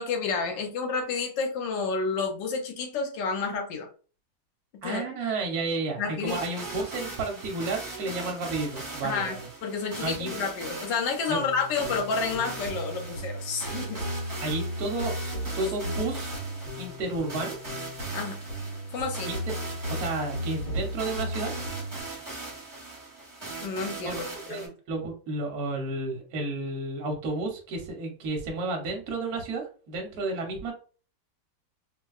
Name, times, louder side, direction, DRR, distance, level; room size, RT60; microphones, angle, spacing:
voice 1, 0.0-3.9 4.7-5.0 6.0-6.4 9.0-14.0 18.1-18.4 18.9-19.4 23.6-24.2 24.5-24.7, left 4 dB, 75° left, 3 dB, 1.3 m, -30 dB
voice 2, 4.8-9.5 10.0-10.3 11.3-11.4 14.4-15.1 15.5-16.3 16.8-17.6 19.3-19.4 19.9-21.5 24.0-24.1 24.5-30.7, right 3 dB, 60° right, 2 dB, 1.3 m, -31 dB
sound 1, 6.3-24.7, right 3 dB, 20° right, 1.0 m, -40 dB
sound 2, 11.3-22.0, equal, 40° left, 1.0 m, -36 dB
4.5 x 2.2 x 2.3 m, 0.38 s
omnidirectional pair, 2.1 m